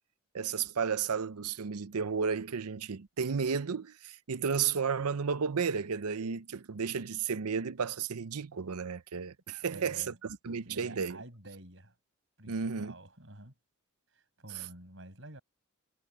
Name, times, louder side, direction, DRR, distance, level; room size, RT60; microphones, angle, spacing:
voice 1, 0.3-10.1 10.4-11.2 12.5-12.9 14.5-14.7, right 6 dB, 90° right, 0.7 m, -33 dB
voice 2, 9.6-10.2 10.6-11.9 12.4-13.5 14.1-15.4, right 1 dB, 55° right, 7.8 m, -50 dB
head